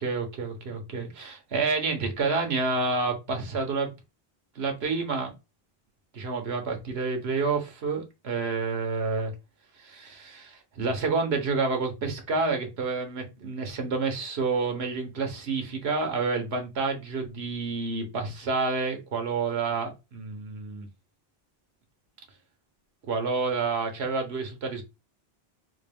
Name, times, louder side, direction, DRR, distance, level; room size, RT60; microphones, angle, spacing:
voice 1, 0.0-3.9 4.5-5.3 6.1-9.3 9.8-20.9 23.1-24.8, right 4 dB, 80° right, 1.2 m, -29 dB
4.2 x 2.2 x 3.4 m
omnidirectional pair, 1.1 m